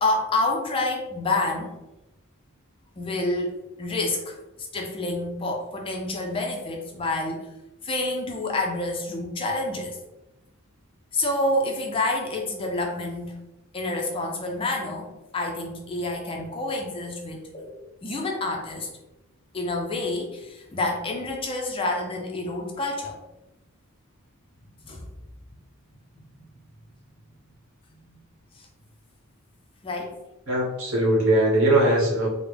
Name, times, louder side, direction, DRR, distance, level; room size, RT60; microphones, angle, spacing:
voice 1, 0.0-1.8 3.0-4.3 4.7-7.5 7.8-10.0 11.1-13.3 13.7-15.1 15.3-17.7 18.0-18.9 19.5-23.2 24.9-25.0 26.2-26.3 28.1-28.2 28.5-28.6 29.8-30.1, left 2 dB, 25° left, 1 dB, 0.3 m, -28 dB
voice 2, 30.5-32.3, right 1 dB, 65° right, -3 dB, 1.0 m, -20 dB
3.4 x 2.0 x 3.2 m, 0.98 s
head